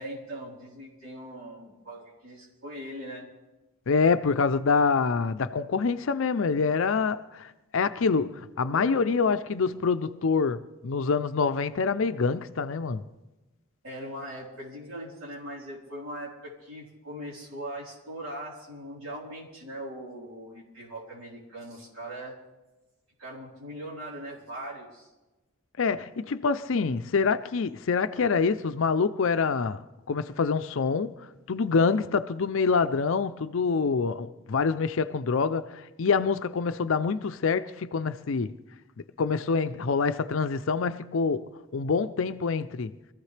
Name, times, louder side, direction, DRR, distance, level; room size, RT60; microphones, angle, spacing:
voice 1, 0.0-3.3 8.7-9.0 13.8-22.4 23.2-25.1, right 1 dB, 70° right, 3.9 m, -40 dB
voice 2, 3.9-13.0 25.8-38.6 39.2-42.9, left 5 dB, 65° left, 0.5 m, -26 dB
24.0 x 15.0 x 3.3 m
head